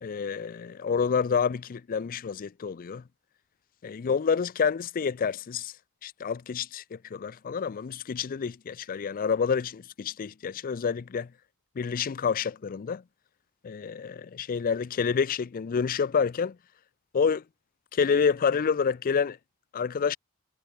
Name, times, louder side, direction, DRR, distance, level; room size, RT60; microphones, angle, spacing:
voice 1, 0.0-3.0 3.8-5.7 6.0-11.3 11.8-13.0 13.6-16.6 17.1-17.4 17.9-19.4 19.7-20.2, left 6 dB, 40° left, 0.4 m, -28 dB
head